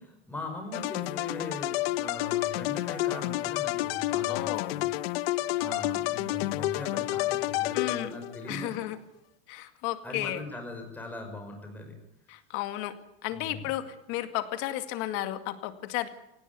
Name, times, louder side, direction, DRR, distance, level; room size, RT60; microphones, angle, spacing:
voice 1, 0.0-5.0 5.6-8.8 10.0-12.0 13.3-13.7, left 2 dB, 5° left, 3 dB, 5.5 m, -40 dB
sound 1, 0.7-8.4, left 16 dB, 70° left, 1.1 m, -30 dB
voice 2, 4.3-4.8 7.7-8.1 8.5-9.0 9.5-10.4 12.3-13.0 13.2-16.1, left 14 dB, 45° left, 10 dB, 2.2 m, -33 dB
24.0 x 18.5 x 9.6 m, 0.86 s
supercardioid pair, 175°, 31 cm